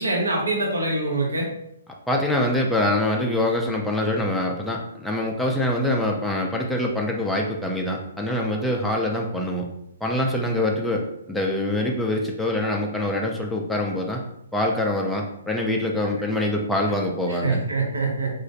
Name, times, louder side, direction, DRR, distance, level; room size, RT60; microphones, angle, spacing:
voice 1, 0.0-1.5 17.3-18.4, right 2 dB, 85° right, -2 dB, 0.8 m, -24 dB
voice 2, 2.1-9.7 10.0-14.2 14.5-17.6, left 1 dB, ahead, -1 dB, 0.3 m, -24 dB
2.4 x 2.0 x 2.6 m, 0.76 s
hypercardioid pair, 135°, 0 cm